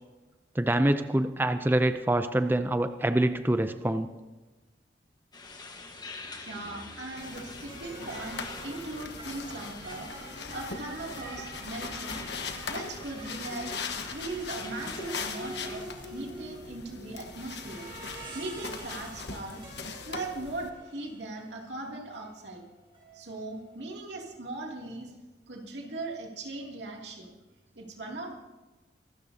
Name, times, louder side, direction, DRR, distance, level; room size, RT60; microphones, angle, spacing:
voice 1, 0.6-4.1, right 1 dB, 10° right, 9 dB, 0.5 m, -25 dB
sound 1, 5.3-15.8, left 3 dB, 25° left, 1.3 m, -46 dB
sound 2, 6.2-6.3 7.2-23.9, right 1 dB, 30° right, 5.9 m, -47 dB
voice 2, 6.4-12.3 12.7-13.8 14.1-19.6 20.1-22.6 23.1-25.1 25.5-27.3 27.8-28.4, right 2 dB, 80° right, -1 dB, 2.6 m, -39 dB
sound 3, 7.2-20.7, left 5 dB, 75° left, 1.3 m, -40 dB
25.0 x 13.0 x 2.8 m, 1.2 s
head